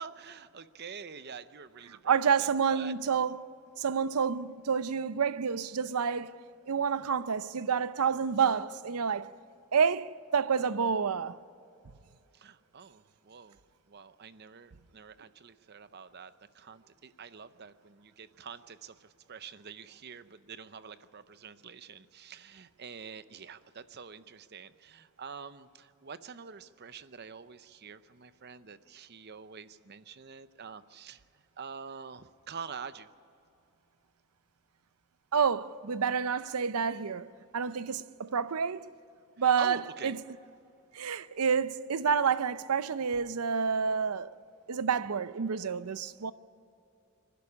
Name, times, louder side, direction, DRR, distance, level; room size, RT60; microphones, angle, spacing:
voice 1, 0.0-2.9 12.3-13.6 13.9-33.1 39.6-40.2, right 6 dB, 45° right, 0.7 m, -46 dB
voice 2, 1.9-3.5 3.8-6.3 6.7-9.3 9.7-11.4 35.3-37.3 37.5-38.9 39.4-39.8 40.0-40.2 40.9-44.3 44.7-46.3, right 6 dB, 80° right, 0.6 m, -29 dB
25.5 x 11.5 x 9.8 m
head